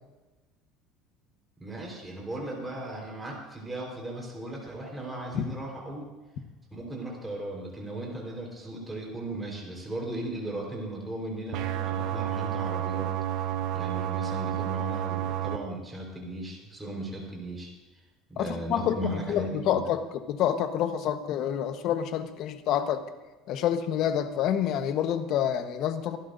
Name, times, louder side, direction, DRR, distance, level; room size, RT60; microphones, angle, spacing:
voice 1, 1.6-6.1 6.7-13.1 13.7-17.7 18.3-19.6, right 1 dB, 10° right, -2 dB, 4.2 m, -37 dB
sound 1, 11.5-15.6, right 11 dB, 65° right, 0.9 m, -30 dB
voice 2, 18.4-20.0 20.3-23.1 23.5-26.2, left 10 dB, 55° left, 8 dB, 1.2 m, -28 dB
25.5 x 12.0 x 2.7 m, 1.2 s
supercardioid pair, 125°, 0 cm